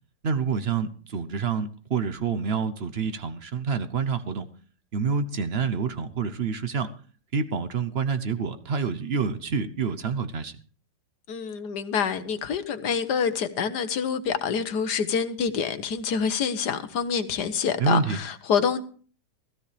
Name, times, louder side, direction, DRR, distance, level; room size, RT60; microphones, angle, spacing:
voice 1, 0.2-4.5 4.9-6.9 7.3-10.6 17.8-18.2, right 5 dB, 45° right, 0.9 m, -27 dB
voice 2, 11.3-18.8, left 6 dB, 70° left, 1.6 m, -27 dB
16.0 x 14.5 x 3.4 m
omnidirectional pair, 1.9 m